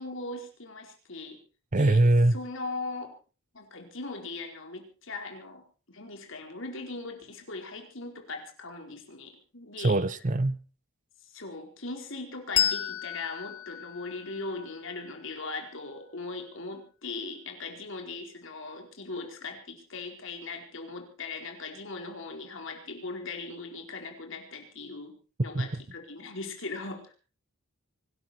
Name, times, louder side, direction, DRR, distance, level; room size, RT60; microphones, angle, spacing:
voice 1, 0.0-1.4 1.7-2.0 2.3-3.1 3.5-10.0 11.3-25.1 25.4-27.1, left 3 dB, 60° left, 4.6 m, -39 dB
voice 2, 1.7-2.4 9.8-10.6 25.5-25.7, right 2 dB, 35° right, 0.8 m, -22 dB
Bell, 12.5-15.6, left 10 dB, 80° left, 1.2 m, -32 dB
25.0 x 12.5 x 4.4 m
head